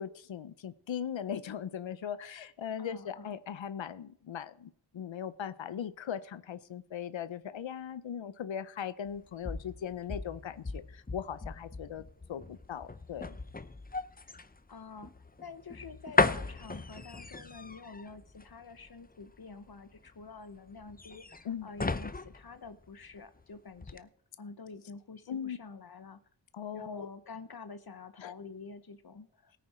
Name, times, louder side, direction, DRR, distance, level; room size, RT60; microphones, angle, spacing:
voice 1, 0.0-13.4 21.4-21.7 25.3-25.6 26.5-27.1 28.2-28.3, left 8 dB, 90° left, 15 dB, 0.7 m, -39 dB
voice 2, 2.8-3.3 14.7-15.1 15.4-24.1 24.4-26.2 26.7-29.5, left 4 dB, 55° left, 12 dB, 1.0 m, -48 dB
sound 1, 9.1-23.4 23.8-24.0, left 3 dB, 20° left, 0.7 m, -36 dB
17.0 x 9.3 x 4.3 m, 0.64 s
cardioid pair, 50°, 44 cm